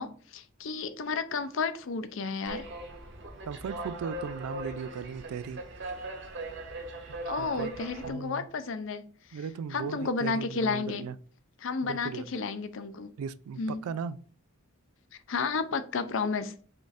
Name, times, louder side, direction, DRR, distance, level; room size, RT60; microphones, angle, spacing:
voice 1, 0.0-2.7 7.3-9.0 9.3-9.4 9.7-11.0 11.6-13.1 13.6-13.9 15.3-16.5, left 4 dB, 60° left, 0.5 m, -32 dB
sound 1, 2.5-8.1, right 2 dB, 55° right, 0.8 m, -39 dB
voice 2, 3.5-5.6 7.1-7.7 8.0-8.5 9.3-11.1 11.8-12.3 13.2-14.2, right 6 dB, 85° right, 0.3 m, -37 dB
5.1 x 2.5 x 4.1 m
head